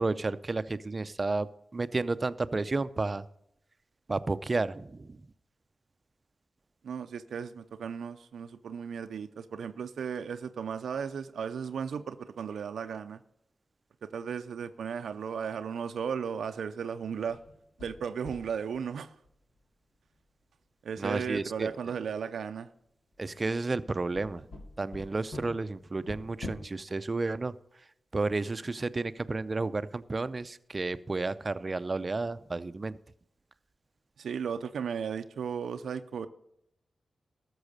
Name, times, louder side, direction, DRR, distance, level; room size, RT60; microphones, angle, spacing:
voice 1, 0.0-3.2 4.1-5.2 21.0-21.7 23.2-24.4 24.8-27.5 28.1-33.0, right 3 dB, 40° right, 14 dB, 0.5 m, -32 dB
voice 2, 6.8-13.2 14.0-17.4 17.8-19.1 20.8-22.7 34.2-36.3, right 7 dB, 85° right, 9 dB, 0.5 m, -35 dB
sound 1, 17.0-18.9 19.2-19.3 19.6-19.7 21.2-21.8 23.1-23.4 23.9-26.5, left 2 dB, 70° left, 2.3 m, -45 dB
13.5 x 6.3 x 6.5 m, 0.76 s
cardioid pair, 55°, 0 cm